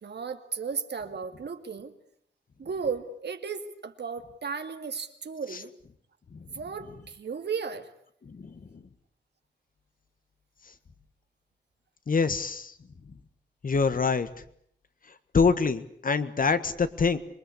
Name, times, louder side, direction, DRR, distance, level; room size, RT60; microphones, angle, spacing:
voice 1, 0.0-1.9 2.6-5.7 6.5-7.9, right 5 dB, 75° right, 7 dB, 2.3 m, -35 dB
voice 2, 12.1-12.7 13.6-14.3 15.3-17.2, left 5 dB, 50° left, 11 dB, 1.6 m, -25 dB
26.5 x 23.0 x 8.5 m, 0.67 s
wide cardioid pair, 135°, 18 cm